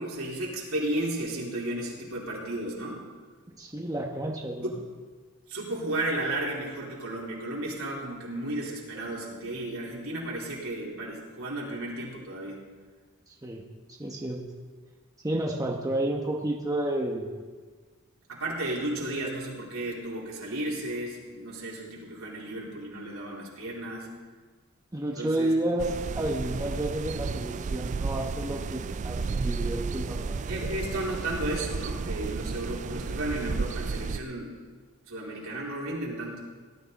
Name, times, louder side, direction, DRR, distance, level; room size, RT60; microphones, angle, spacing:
voice 1, 0.0-3.0 4.6-4.8 5.5-12.6 18.3-24.1 25.2-25.5 30.5-34.5 35.1-36.4, right 1 dB, 70° right, -4 dB, 4.0 m, -33 dB
voice 2, 3.5-4.7 13.3-14.4 15.2-17.3 24.9-30.5, right 1 dB, 15° right, 0 dB, 1.0 m, -31 dB
sound 1, 25.8-34.2, right 4 dB, 35° right, 0.3 m, -33 dB
18.5 x 12.5 x 4.1 m, 1.5 s
head